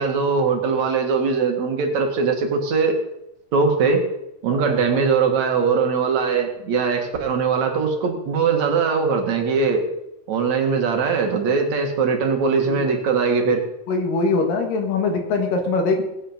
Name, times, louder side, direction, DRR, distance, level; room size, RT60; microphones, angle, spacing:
voice 1, 0.0-3.0 3.5-4.0 4.4-9.8 10.3-13.6, right 5 dB, 60° right, 3 dB, 2.9 m, -21 dB
voice 2, 13.9-16.0, left 3 dB, 80° left, 3 dB, 3.6 m, -22 dB
18.5 x 9.1 x 5.1 m, 0.87 s
omnidirectional pair, 3.8 m